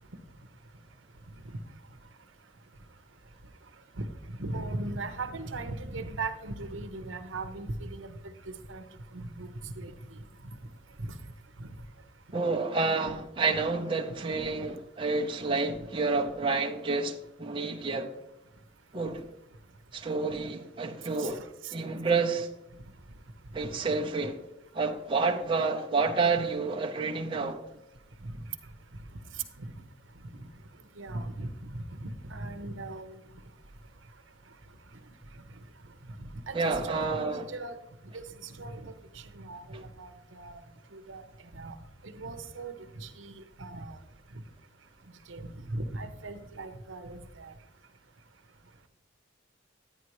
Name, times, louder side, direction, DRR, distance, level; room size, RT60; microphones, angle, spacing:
voice 1, 4.0-8.1 8.7-8.8 9.1-9.9 11.0-11.1 11.6-11.7 21.2-21.7 28.2-28.4 29.6-29.7 31.0-33.2 36.5-37.8 38.1-38.9 39.3-40.6 40.9-41.2 41.5-41.7 42.0-44.0 45.3-47.5, right 2 dB, 75° right, 0.9 m, -38 dB
voice 2, 12.3-18.1 18.9-19.3 19.9-21.4 21.7-22.5 23.5-24.4 24.7-27.6 36.5-37.5, right 4 dB, 25° right, 0.9 m, -29 dB
10.5 x 10.0 x 3.1 m
head